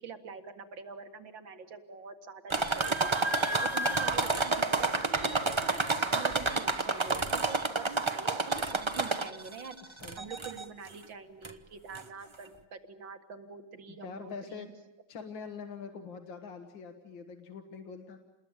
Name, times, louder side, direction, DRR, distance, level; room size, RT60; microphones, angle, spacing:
voice 1, 0.0-3.2 3.6-9.8 10.2-14.7, right 5 dB, 70° right, 8 dB, 2.6 m, -45 dB
sound 1, 2.5-9.5 10.0-10.6 11.4-11.5 11.9-12.0, right 3 dB, 25° right, 0.7 m, -29 dB
voice 2, 9.8-10.3 13.9-14.7 15.1-18.2, left 5 dB, 70° left, 6 dB, 2.1 m, -44 dB
28.5 x 20.5 x 9.0 m, 0.98 s
omnidirectional pair, 2.2 m